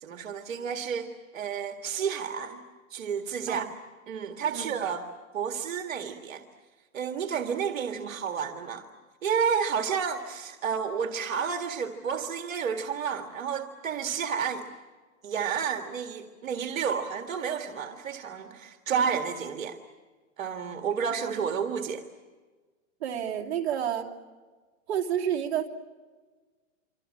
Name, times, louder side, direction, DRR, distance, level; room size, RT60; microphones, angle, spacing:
voice 1, 0.0-2.6 2.9-3.6 4.1-5.1 5.3-6.4 6.9-8.9 9.2-14.7 15.2-19.8 20.4-22.1, right 7 dB, 75° right, 6 dB, 2.0 m, -31 dB
voice 2, 23.0-24.1 24.9-25.7, right 9 dB, 50° right, 1 dB, 3.0 m, -29 dB
26.5 x 26.0 x 7.6 m, 1.4 s
hypercardioid pair, 140°, 40 cm